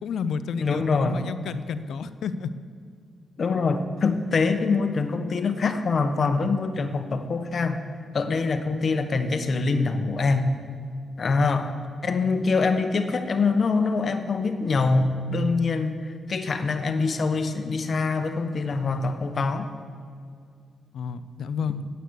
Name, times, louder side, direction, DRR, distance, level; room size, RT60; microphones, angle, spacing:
voice 1, 0.0-2.5 20.9-21.8, left 6 dB, 80° left, 13 dB, 0.5 m, -30 dB
voice 2, 0.6-1.2 3.4-7.8 8.1-10.6 11.2-11.7 12.0-19.7, left 4 dB, 50° left, 8 dB, 1.0 m, -24 dB
9.3 x 8.2 x 8.1 m, 2.3 s
cardioid pair, 75°, 0 cm